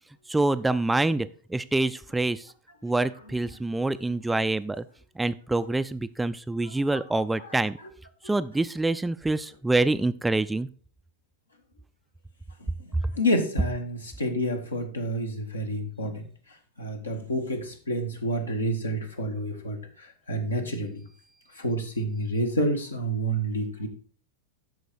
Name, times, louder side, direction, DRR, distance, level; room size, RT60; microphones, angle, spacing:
voice 1, 0.3-2.5 2.8-4.8 5.2-7.8 8.2-10.7, right 2 dB, 5° right, 13 dB, 0.4 m, -26 dB
voice 2, 6.7-7.0 12.6-12.7 13.1-16.3 16.8-21.0 21.6-23.9, equal, 80° left, 4 dB, 1.6 m, -29 dB
13.0 x 4.7 x 4.4 m, 0.43 s
figure-of-eight pair, 90°, 0 cm